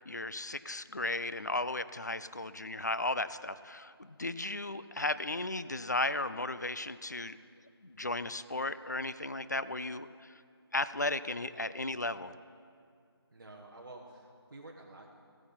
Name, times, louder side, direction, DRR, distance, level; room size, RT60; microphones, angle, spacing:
voice 1, 0.1-7.4 7.8-10.4 10.7-12.4, left 2 dB, 40° left, 14 dB, 0.3 m, -35 dB
voice 2, 13.3-15.1, right 2 dB, 50° right, -1 dB, 1.1 m, -50 dB
15.0 x 8.8 x 5.6 m, 2.3 s
figure-of-eight pair, 175°, 14 cm